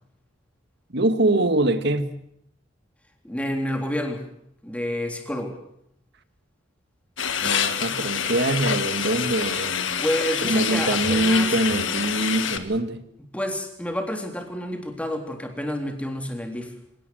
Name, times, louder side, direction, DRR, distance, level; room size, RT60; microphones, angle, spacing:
voice 1, 0.9-2.2 7.4-10.0 10.4-13.0, right 2 dB, 60° right, 1.8 m, -23 dB
voice 2, 3.2-4.2 4.6-5.6 10.0-11.6 13.3-16.7, equal, 5° left, 3.8 m, -29 dB
sound 1, 7.2-12.6, left 8 dB, 75° left, 1.8 m, -26 dB
26.0 x 18.0 x 8.0 m
head